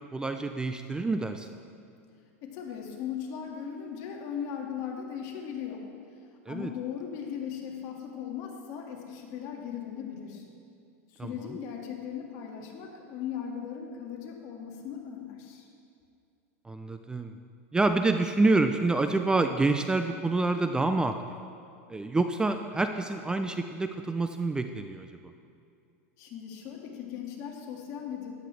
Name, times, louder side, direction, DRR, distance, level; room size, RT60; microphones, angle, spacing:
voice 1, 0.0-1.5 6.5-6.7 11.2-11.3 16.7-17.4 17.7-21.2 21.9-25.1, right 3 dB, 10° right, 7 dB, 0.4 m, -27 dB
voice 2, 2.4-5.9 6.5-10.5 11.1-15.6 26.2-28.3, left 8 dB, 50° left, 0 dB, 2.0 m, -38 dB
13.0 x 10.5 x 3.3 m, 2.5 s
hypercardioid pair, 115°, 8 cm